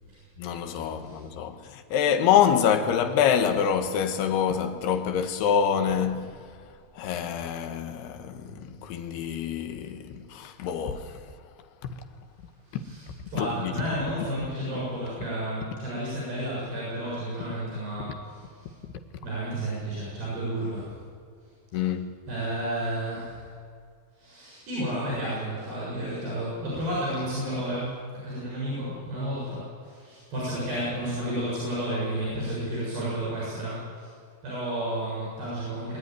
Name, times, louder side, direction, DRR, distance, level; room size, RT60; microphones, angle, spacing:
voice 1, 0.4-6.3 7.0-11.1 12.7-12.8 13.4-13.7 21.7-22.1, left 8 dB, 90° left, 3.2 m, -26 dB
voice 2, 12.7-18.7 19.2-20.9 22.3-23.5 24.2-27.9 28.2-34.1 34.4-36.0, right 1 dB, 75° right, 9.2 m, -32 dB
25.0 x 11.5 x 9.5 m
omnidirectional pair, 4.5 m